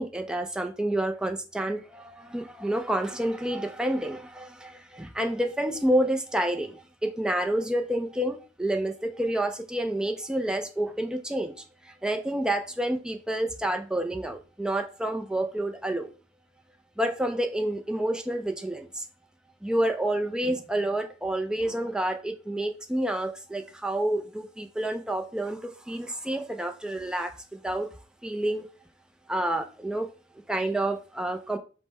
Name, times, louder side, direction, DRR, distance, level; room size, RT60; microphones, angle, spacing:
voice 1, 0.0-16.1 17.0-19.1 19.6-27.9 28.2-28.7 29.3-30.1 30.5-31.6, right 1 dB, 5° right, 0.4 m, -29 dB
5.3 x 2.1 x 4.2 m
head